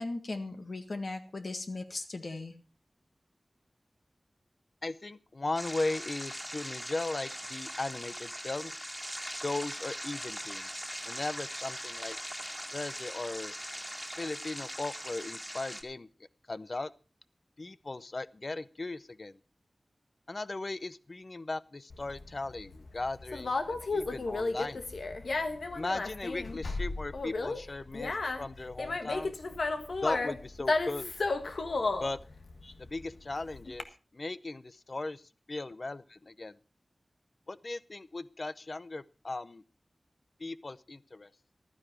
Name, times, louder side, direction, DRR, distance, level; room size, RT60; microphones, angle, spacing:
voice 1, 0.0-2.6 32.6-32.7, left 2 dB, 65° left, 5 dB, 1.8 m, -38 dB
voice 2, 4.8-8.9 9.3-10.7 11.0-12.2 12.7-13.5 14.2-16.1 16.5-16.9 17.6-19.4 20.3-24.8 25.7-28.1 28.4-29.3 30.0-31.1 32.0-32.2 32.8-33.9 34.1-35.2 35.5-36.6 37.5-39.6 40.4-41.3, left 2 dB, 50° left, 16 dB, 0.6 m, -37 dB
sound 1, 5.6-15.8, equal, 5° left, 2.1 m, -41 dB
Conversation, 21.9-33.8, left 3 dB, 90° left, 1.5 m, -33 dB
15.0 x 12.5 x 4.6 m, 0.34 s
wide cardioid pair, 80°, 0 cm